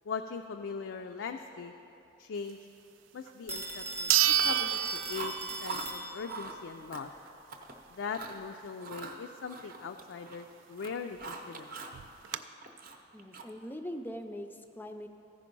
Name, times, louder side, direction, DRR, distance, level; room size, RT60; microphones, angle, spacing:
voice 1, 0.1-1.7 2.2-2.6 3.1-7.1 7.9-11.7, left 5 dB, 85° left, 5 dB, 0.4 m, -40 dB
sound 1, 3.3-3.4 4.1-5.9 6.2-6.3 11.0-11.1 11.3-11.4 11.9-12.4, right 11 dB, 90° right, 0.3 m, -28 dB
Telephone, 3.5-6.5, right 2 dB, 15° right, 0.8 m, -39 dB
Chewing mastication, 4.3-4.8 5.1-5.9 6.3-6.6 6.9-7.7 8.1-8.4 8.8-10.5 10.7-12.0 12.3-13.6, right 3 dB, 50° right, 0.7 m, -42 dB
voice 2, 13.1-15.1, equal, 10° left, 6 dB, 0.4 m, -41 dB
14.5 x 5.1 x 5.3 m, 2.8 s
head